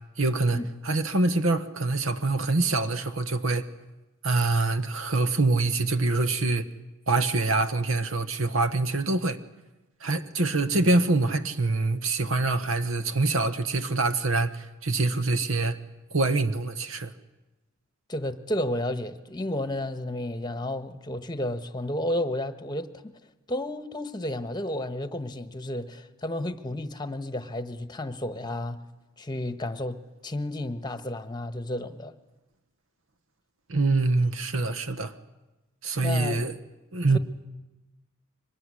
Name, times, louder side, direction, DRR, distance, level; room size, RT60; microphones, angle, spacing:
voice 1, 0.2-3.7 4.2-6.7 7.1-9.4 10.0-15.8 16.1-17.1 33.7-35.1 35.8-36.5 36.9-37.2, right 3 dB, 70° right, 1.2 m, -25 dB
voice 2, 18.1-22.9 23.5-28.8 29.2-32.1 36.0-36.5, left 1 dB, 20° left, 1.2 m, -32 dB
24.5 x 20.5 x 9.9 m
head